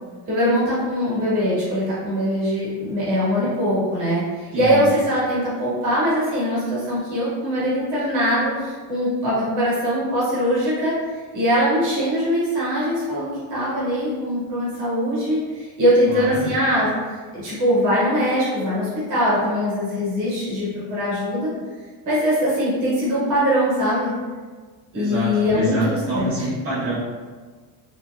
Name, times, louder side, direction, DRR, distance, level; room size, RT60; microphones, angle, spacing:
voice 1, 0.3-21.5 22.0-24.1 24.9-26.3, equal, 40° right, -8 dB, 1.3 m, -22 dB
voice 2, 4.5-4.8 16.0-16.5 24.9-27.0, right 1 dB, 70° right, -9 dB, 1.1 m, -27 dB
3.0 x 3.0 x 2.3 m, 1.4 s
cardioid pair, 175°, 46 cm